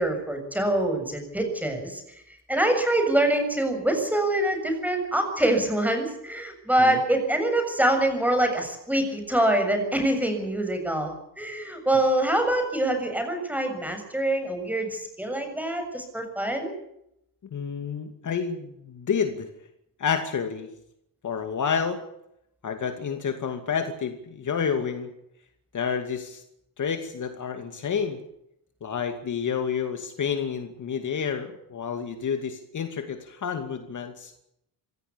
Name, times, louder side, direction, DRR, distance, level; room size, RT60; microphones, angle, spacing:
voice 1, 0.0-2.0 2.5-16.7, right 1 dB, 5° right, 5 dB, 6.9 m, -25 dB
voice 2, 17.5-19.5 20.0-20.7 21.2-22.0 22.6-25.1 25.7-26.4 26.8-28.2 28.8-34.3, left 6 dB, 45° left, 6 dB, 2.5 m, -29 dB
26.0 x 17.5 x 7.0 m, 0.79 s
cardioid pair, 145°, 42 cm